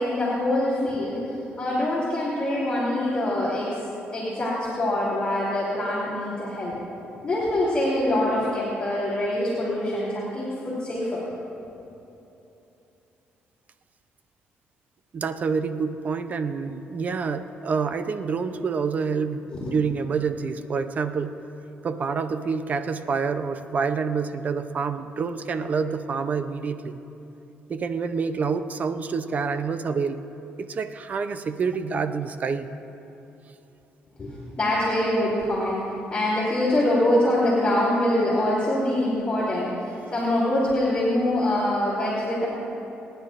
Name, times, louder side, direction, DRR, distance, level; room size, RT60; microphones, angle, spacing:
voice 1, 0.0-3.8 4.1-6.7 7.2-11.2 19.5-19.7 34.2-42.5, left 1 dB, 25° left, -8 dB, 2.9 m, -24 dB
voice 2, 15.1-21.4 21.8-27.0 27.7-30.2 30.6-32.7, right 5 dB, 45° right, 10 dB, 0.6 m, -27 dB
27.5 x 10.0 x 2.5 m, 2.9 s
cardioid pair, 110°, 4 cm